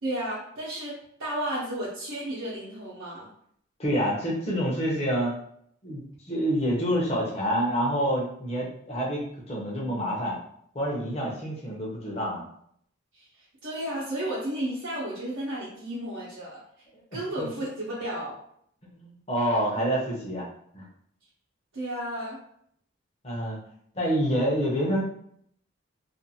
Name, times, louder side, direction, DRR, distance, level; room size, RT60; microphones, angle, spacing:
voice 1, 0.0-0.9 1.2-3.3 13.1-16.6 17.1-18.4 21.7-22.4, right 1 dB, 75° right, -8 dB, 0.8 m, -33 dB
voice 2, 3.8-5.3 5.8-6.0 6.3-10.4 10.7-12.4 17.4-17.5 18.8-20.5 20.7-20.9 23.2-23.6 23.9-25.0, equal, 30° left, -3 dB, 0.7 m, -27 dB
2.5 x 2.4 x 2.7 m, 0.68 s
head